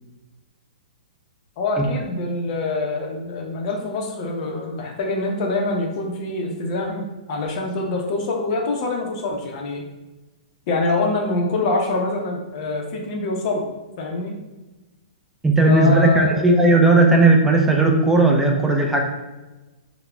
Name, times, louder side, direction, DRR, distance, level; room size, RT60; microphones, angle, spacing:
voice 1, 1.6-9.8 10.7-13.6 14.0-14.3 15.6-16.5, left 2 dB, 45° left, 1 dB, 0.6 m, -25 dB
voice 2, 15.4-19.0, right 2 dB, 5° right, 1 dB, 0.3 m, -16 dB
3.4 x 2.1 x 2.2 m, 1.1 s
hypercardioid pair, 135°, 5 cm